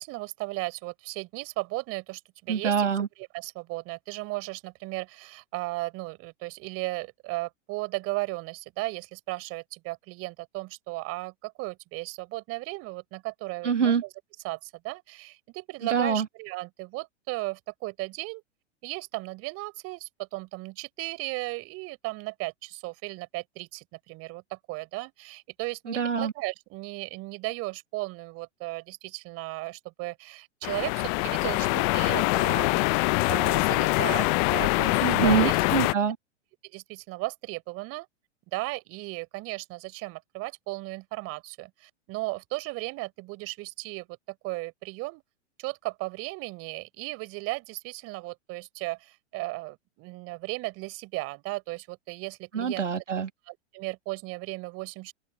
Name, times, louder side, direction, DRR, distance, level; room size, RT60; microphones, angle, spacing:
voice 1, 0.0-2.9 3.3-13.9 14.4-18.4 18.8-32.8 33.3-35.6 36.6-38.1 38.5-45.2 45.6-52.9 53.5-55.1, right 22 dB, 40° right, 4.1 m, -36 dB
voice 2, 2.5-3.1 13.6-14.0 15.9-16.3 25.9-26.3 35.0-36.2 52.5-53.3, right 7 dB, 90° right, 1.7 m, -25 dB
sound 1, 30.6-35.9, left 33 dB, 35° left, 0.5 m, -24 dB
hypercardioid pair, 105°, 35 cm